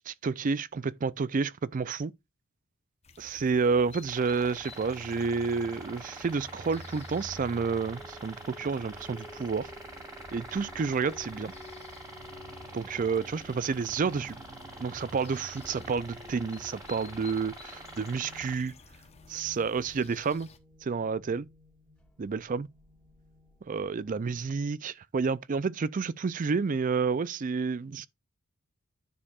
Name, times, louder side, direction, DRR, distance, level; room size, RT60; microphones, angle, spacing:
voice 1, 0.0-2.1 3.2-9.7 10.3-11.5 12.7-14.4 14.8-18.7 19.3-20.5 20.8-21.5 22.2-22.7 23.7-28.1, right 5 dB, 35° right, 0.4 m, -30 dB
sound 1, 3.0-20.6, left 5 dB, 30° left, 1.0 m, -54 dB
sound 2, 4.0-18.5, right 1 dB, 15° right, 2.2 m, -46 dB
sound 3, 4.8-24.5, left 1 dB, 5° left, 1.8 m, -51 dB
10.0 x 6.5 x 2.4 m
head